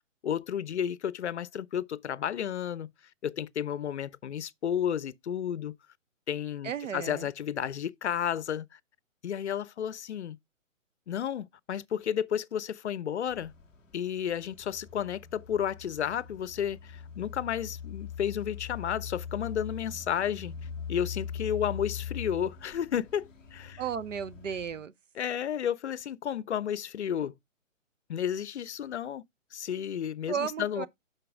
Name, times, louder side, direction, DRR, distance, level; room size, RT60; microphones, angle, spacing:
voice 1, 0.2-2.9 3.2-5.8 6.3-8.7 9.2-10.4 11.1-13.5 13.9-20.5 20.9-23.8 25.2-27.3 28.1-29.2 29.5-30.9, left 9 dB, 60° left, 0.5 m, -32 dB
voice 2, 6.6-7.2 23.8-24.9 30.3-30.9, right 7 dB, 70° right, 0.8 m, -34 dB
sound 1, 13.3-24.8, left 7 dB, ahead, 0.5 m, -42 dB
6.8 x 5.7 x 3.5 m
figure-of-eight pair, 140°, 40 cm